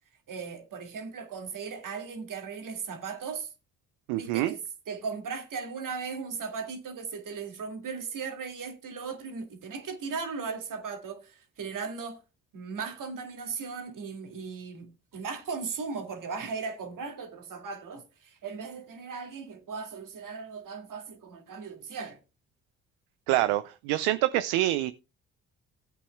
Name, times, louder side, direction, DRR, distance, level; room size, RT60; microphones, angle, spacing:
voice 1, 0.3-3.5 4.2-4.6 4.9-12.2 12.5-22.2, right 5 dB, 55° right, 2.2 m, -37 dB
voice 2, 4.1-4.5 23.3-24.9, right 15 dB, 75° right, 0.6 m, -26 dB
18.0 x 8.3 x 2.2 m
hypercardioid pair, 45°, 37 cm